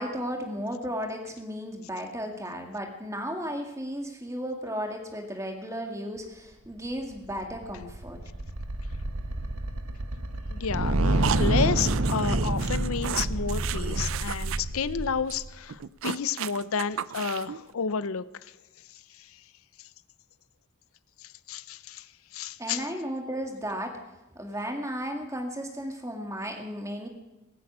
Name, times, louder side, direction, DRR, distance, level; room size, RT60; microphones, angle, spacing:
voice 1, 0.0-8.2 22.6-24.0 24.4-27.1, equal, 15° right, 2 dB, 2.0 m, -34 dB
sound 1, 7.2-15.6, right 1 dB, 90° right, 1.2 m, -28 dB
voice 2, 10.5-18.2 19.2-19.3 21.2-22.1 22.3-22.9, left 6 dB, 80° left, 16 dB, 0.6 m, -31 dB
sound 2, 11.2-14.6 14.9-15.0 15.3-15.4 15.7-17.6, right 9 dB, 70° right, 0.4 m, -34 dB
19.5 x 8.5 x 8.7 m, 1.0 s
head